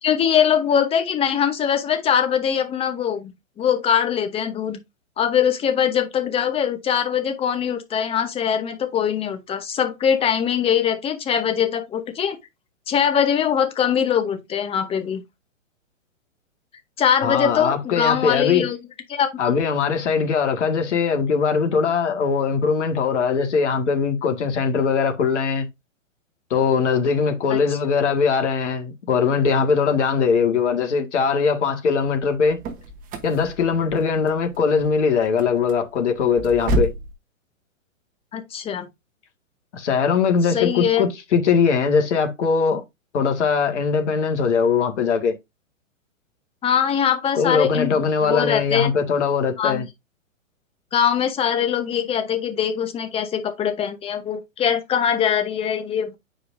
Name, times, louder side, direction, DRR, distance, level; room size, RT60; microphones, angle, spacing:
voice 1, 0.0-4.8 5.2-12.4 12.9-15.2 17.0-18.8 19.1-19.6 27.5-27.8 38.3-38.9 40.5-41.1 46.6-48.9 49.6-49.8 50.9-56.2, left 8 dB, 15° left, 0.9 m, -22 dB
voice 2, 17.2-18.7 19.4-25.7 26.5-32.6 33.2-36.9 39.7-42.8 43.1-45.3 47.3-49.9, left 5 dB, 60° left, 2.0 m, -21 dB
sound 1, 32.2-37.1, right 1 dB, 20° right, 1.0 m, -30 dB
8.9 x 5.0 x 2.6 m
hypercardioid pair, 130°, 40 cm